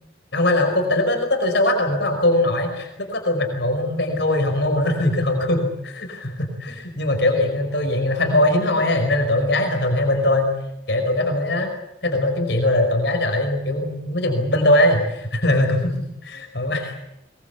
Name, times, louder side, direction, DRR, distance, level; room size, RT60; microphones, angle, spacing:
voice 1, 0.3-10.5 10.9-11.7 12.0-17.0, left 1 dB, 60° left, 4 dB, 5.1 m, -21 dB
22.5 x 22.5 x 8.3 m, 0.86 s
head